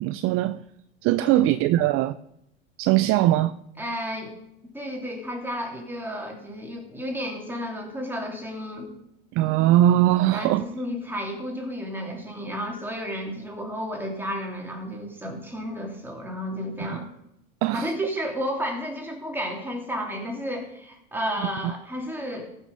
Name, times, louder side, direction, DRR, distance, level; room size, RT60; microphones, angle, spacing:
voice 1, 0.0-0.6 1.0-2.1 2.8-3.5 9.3-10.7 16.8-17.0 17.6-17.9, right 14 dB, 45° right, 0.5 m, -21 dB
voice 2, 3.8-4.4 4.7-8.9 10.3-17.1 17.7-22.5, equal, 5° right, 3.1 m, -32 dB
14.5 x 6.2 x 5.3 m
hypercardioid pair, 100°, 31 cm